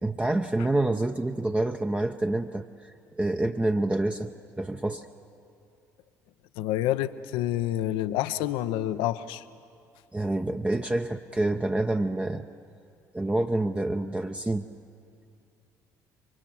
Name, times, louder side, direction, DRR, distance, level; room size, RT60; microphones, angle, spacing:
voice 1, 0.0-5.1 10.1-12.4 13.1-14.7, right 2 dB, 15° right, 5 dB, 0.7 m, -27 dB
voice 2, 6.6-9.4, left 13 dB, 65° left, 13 dB, 0.7 m, -28 dB
28.0 x 24.0 x 6.0 m, 2.4 s
figure-of-eight pair, 55°, 9 cm